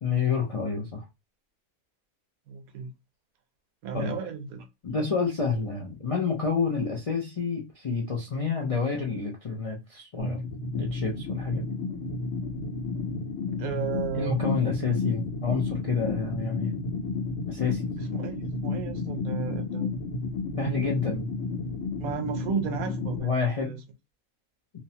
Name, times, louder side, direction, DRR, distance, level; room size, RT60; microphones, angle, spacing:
voice 1, 0.0-1.0 3.9-4.1 4.8-10.4 10.7-11.7 14.1-16.8 17.5-17.9 20.6-21.3 23.2-23.7, left 5 dB, 55° left, 0.3 m, -29 dB
voice 2, 2.5-2.9 3.8-4.7 13.6-14.4 18.0-19.9 22.0-23.3 23.5-23.8, right 6 dB, 80° right, 1.1 m, -33 dB
sound 1, 10.2-23.2, left 3 dB, 75° left, 1.3 m, -32 dB
3.0 x 2.0 x 2.7 m
omnidirectional pair, 1.5 m